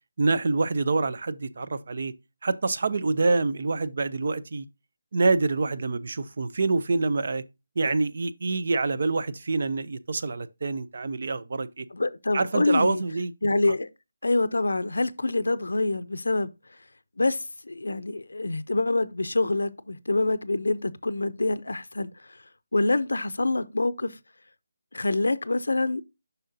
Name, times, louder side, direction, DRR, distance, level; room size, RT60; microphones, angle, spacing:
voice 1, 0.2-2.1 2.4-4.7 5.1-7.4 7.8-11.9 12.3-13.3 13.7-13.8, right 3 dB, 55° right, 0.5 m, -26 dB
voice 2, 11.9-13.0 13.4-13.9 14.2-16.5 17.2-22.1 22.7-24.1 24.9-26.0, left 2 dB, 75° left, 0.5 m, -26 dB
7.1 x 5.6 x 2.6 m
figure-of-eight pair, 160°, 0 cm